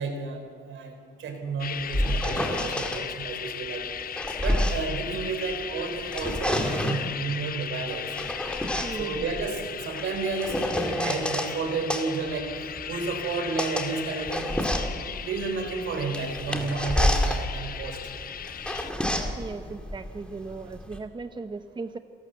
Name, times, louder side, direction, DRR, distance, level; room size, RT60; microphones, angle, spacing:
voice 1, 0.0-3.9 4.4-8.3 8.9-14.8 15.2-18.0, right 4 dB, 75° right, 6 dB, 3.8 m, -32 dB
sound 1, 1.6-18.9, left 9 dB, 50° left, 0.6 m, -37 dB
sound 2, 1.6-3.0 3.8-5.6 6.0-7.1 7.9-11.5 11.9-21.0, left 1 dB, 5° left, 2.5 m, -29 dB
voice 2, 8.8-9.2 19.4-22.0, right 4 dB, 25° right, 10 dB, 0.7 m, -37 dB
28.0 x 12.5 x 8.1 m, 2.1 s
cardioid pair, 90°, 20 cm